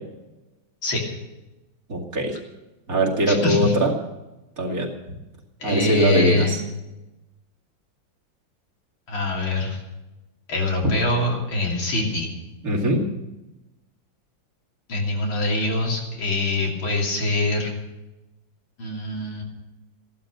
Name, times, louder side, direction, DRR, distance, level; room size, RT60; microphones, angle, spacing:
voice 1, 1.9-2.4 2.9-3.9 4.6-4.9 5.6-6.6 12.6-13.1, equal, 45° right, -2 dB, 2.8 m, -21 dB
voice 2, 3.3-3.7 5.6-6.6 9.1-9.8 10.5-12.3 14.9-17.7 18.8-19.4, left 2 dB, 90° left, 0 dB, 3.7 m, -24 dB
15.5 x 12.0 x 6.7 m, 1.0 s
omnidirectional pair, 2.1 m